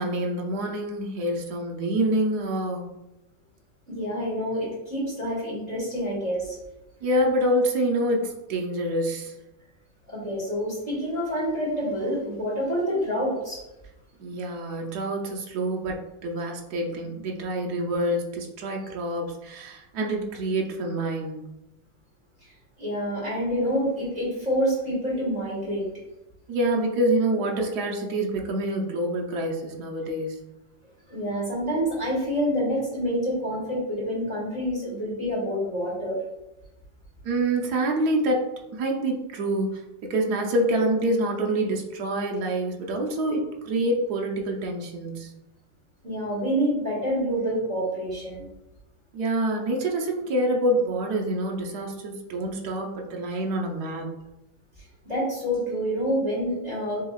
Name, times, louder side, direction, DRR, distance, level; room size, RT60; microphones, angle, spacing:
voice 1, 0.0-2.9 7.0-9.3 14.2-21.4 26.5-30.4 37.2-45.3 49.1-54.2, right 1 dB, 65° right, 0 dB, 1.2 m, -26 dB
voice 2, 3.9-6.6 10.1-13.6 22.8-25.9 31.1-36.2 46.0-48.5 55.1-57.0, equal, 25° right, -6 dB, 1.5 m, -27 dB
6.9 x 2.9 x 2.4 m, 0.93 s
omnidirectional pair, 2.0 m